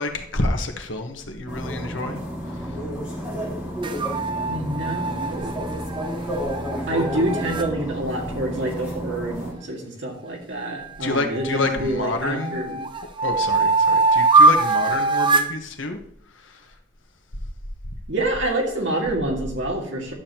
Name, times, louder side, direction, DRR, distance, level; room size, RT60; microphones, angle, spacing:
voice 1, 0.0-2.2 2.5-2.8 11.0-12.6 13.2-16.0 16.3-16.7, left 2 dB, 75° left, 5 dB, 1.3 m, -28 dB
sound 1, 1.5-9.5, equal, 5° right, 3.6 m, -31 dB
sound 2, 3.8-7.7 10.6-11.9 12.4-15.6, right 3 dB, 25° right, 0.6 m, -22 dB
voice 2, 4.5-5.5 6.9-12.8 18.1-20.1, right 1 dB, 70° right, -1 dB, 2.2 m, -27 dB
11.5 x 7.3 x 3.0 m, 0.67 s
head